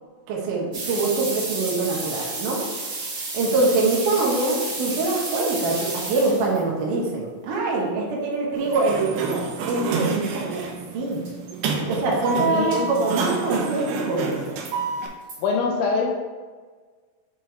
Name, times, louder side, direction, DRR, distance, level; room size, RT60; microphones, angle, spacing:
voice 1, 0.3-2.9 3.3-10.7 10.9-11.2 11.9-14.6, right 3 dB, 70° right, -3 dB, 2.5 m, -24 dB
sound 1, 0.7-6.6 9.4-9.5 9.7-9.8 10.3-10.4 10.6-10.7 11.1-11.3 12.7-13.0 13.5-13.6 14.2-14.7 15.3-15.4, right 3 dB, 50° right, 3.2 m, -31 dB
Sliding door, 8.6-15.1, right 5 dB, 90° right, 2.7 m, -28 dB
voice 2, 12.5-12.9 15.4-16.1, left 4 dB, 75° left, 1 dB, 2.0 m, -24 dB
8.1 x 3.6 x 4.5 m, 1.5 s
omnidirectional pair, 4.2 m